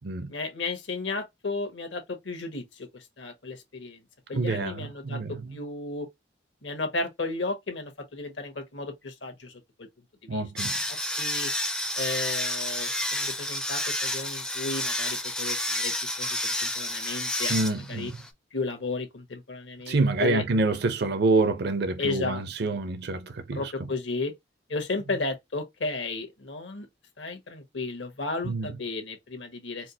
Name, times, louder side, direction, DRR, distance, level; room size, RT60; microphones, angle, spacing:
voice 1, 0.3-4.0 4.3-6.1 6.6-9.9 10.2-10.4 11.2-11.5 12.0-18.1 18.5-20.4 22.0-22.4 23.5-24.3 24.7-26.9 27.2-29.9, left 3 dB, 70° left, 1.2 m, -34 dB
voice 2, 4.3-5.6 10.3-10.8 17.5-18.2 19.9-23.7 28.4-28.7, right 3 dB, 60° right, 0.6 m, -27 dB
sound 1, 10.6-18.3, left 1 dB, 5° left, 0.4 m, -30 dB
4.4 x 2.0 x 2.7 m
head